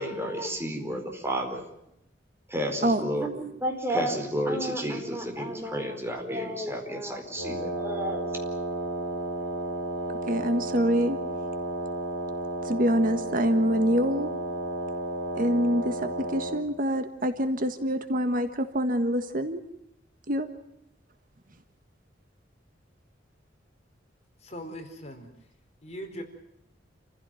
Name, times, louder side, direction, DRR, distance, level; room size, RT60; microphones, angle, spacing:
voice 1, 0.0-1.6 2.5-8.2, equal, 15° right, 4 dB, 4.5 m, -31 dB
Wind instrument woodwind instrument, 7.3-16.7, right 1 dB, 80° right, 6.0 m, -32 dB
voice 2, 10.3-11.2 12.6-14.3 15.3-16.0 16.3-19.6 20.3-20.5, equal, 50° right, 8 dB, 1.6 m, -25 dB
voice 3, 24.4-25.3 25.8-26.2, equal, 35° left, 4 dB, 4.5 m, -39 dB
28.5 x 16.0 x 9.2 m, 0.78 s
head